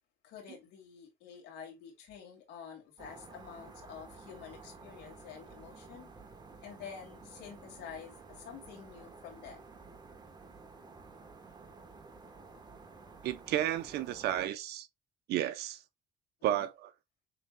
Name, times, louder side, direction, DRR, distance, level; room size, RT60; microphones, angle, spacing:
voice 1, 0.2-6.1 6.6-9.7 16.4-16.7, left 7 dB, 85° left, 2.4 m, -49 dB
sound 1, 3.0-14.5, right 4 dB, 25° right, 1.1 m, -52 dB
voice 2, 13.2-14.9 15.3-15.8 16.4-16.9, right 12 dB, 75° right, 0.7 m, -32 dB
6.8 x 3.4 x 2.2 m
cardioid pair, 110°, 17 cm